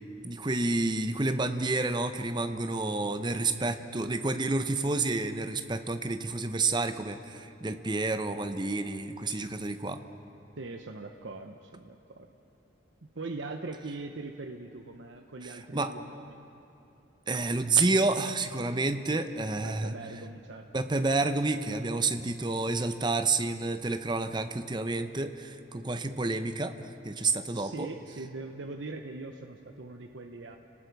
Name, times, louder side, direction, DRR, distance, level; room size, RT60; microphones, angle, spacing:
voice 1, 0.2-10.0 15.4-15.9 17.3-19.9 20.7-27.9, right 3 dB, 25° right, 9 dB, 0.7 m, -29 dB
voice 2, 10.6-12.3 13.0-16.4 19.6-20.7 27.5-30.6, right 3 dB, 70° right, 4 dB, 0.8 m, -41 dB
29.5 x 19.0 x 4.7 m, 2.9 s
head